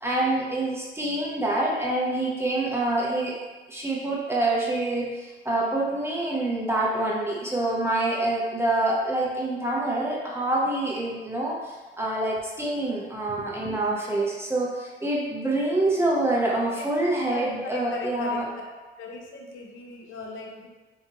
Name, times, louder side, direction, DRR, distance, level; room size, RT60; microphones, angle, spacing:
voice 1, 0.0-18.4, right 2 dB, 10° right, -4 dB, 0.8 m, -26 dB
voice 2, 17.3-18.4 19.0-20.7, left 3 dB, 85° left, 0 dB, 0.7 m, -38 dB
4.9 x 2.7 x 2.8 m, 1.2 s
cardioid pair, 90°, 20 cm